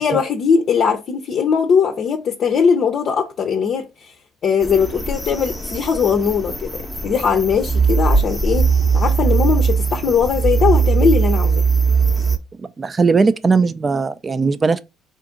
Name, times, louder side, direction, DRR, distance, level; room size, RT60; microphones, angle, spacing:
voice 1, 0.0-4.1 4.4-11.6, left 6 dB, 55° left, 0.6 m, -19 dB
sound 1, 4.6-12.4, right 5 dB, 5° right, 0.7 m, -19 dB
voice 2, 12.6-14.8, right 4 dB, 30° right, 0.4 m, -18 dB
3.8 x 2.5 x 3.7 m
supercardioid pair, 85°, 0 cm